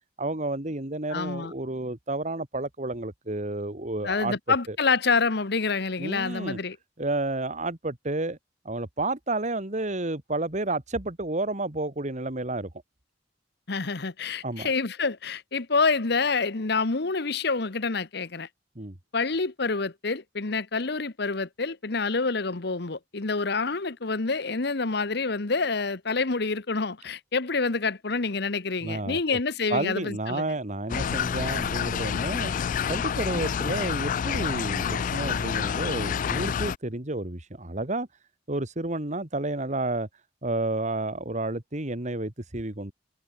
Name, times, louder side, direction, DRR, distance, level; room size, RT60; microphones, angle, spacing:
voice 1, 0.2-4.4 4.7-4.8 6.0-6.6 7.0-8.4 8.6-12.7 14.4-14.7 18.8-18.9 28.8-29.2 29.7-32.5 32.9-38.1 38.5-40.1 40.4-42.9, right 2 dB, 40° right, 2.2 m, -31 dB
voice 2, 1.1-1.5 4.0-6.8 13.7-18.5 19.1-30.4, left 4 dB, 65° left, 1.2 m, -27 dB
sound 1, 30.9-36.8, left 7 dB, 45° left, 0.3 m, -28 dB
head